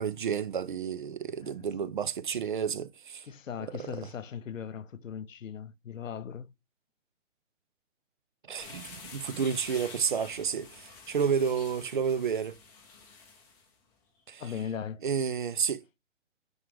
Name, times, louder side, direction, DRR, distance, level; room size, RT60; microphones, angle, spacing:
voice 1, 0.0-3.2 3.8-3.9 8.5-12.6 14.3-14.4 15.0-15.8, right 7 dB, 40° right, 0.5 m, -31 dB
voice 2, 3.2-6.5 14.4-15.0, left 8 dB, 80° left, 0.8 m, -38 dB
sound 1, 8.6-13.7, left 4 dB, 5° left, 0.6 m, -48 dB
9.3 x 3.6 x 3.3 m
hypercardioid pair, 155°, 39 cm